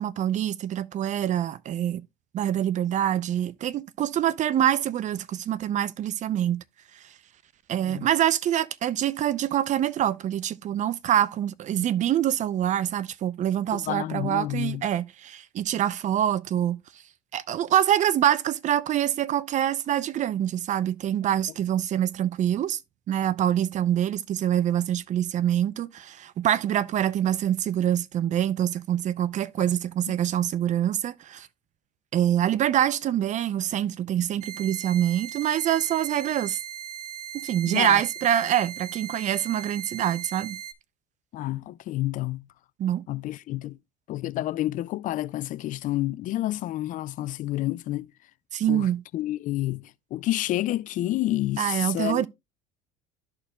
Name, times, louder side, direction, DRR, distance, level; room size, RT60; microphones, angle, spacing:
voice 1, 0.0-2.0 2.3-6.6 7.7-16.8 17.3-22.8 23.1-31.5 32.1-36.6 37.3-40.6 42.8-43.0 48.5-49.0 51.6-52.3, right 11 dB, 40° right, 0.5 m, -25 dB
voice 2, 13.7-14.8 37.7-38.0 41.3-42.4 43.1-43.8 44.1-48.1 48.7-52.3, left 15 dB, 45° left, 0.4 m, -29 dB
sound 1, 34.4-40.7, right 9 dB, 85° right, 0.8 m, -39 dB
13.0 x 4.4 x 2.3 m
supercardioid pair, 90°, 18 cm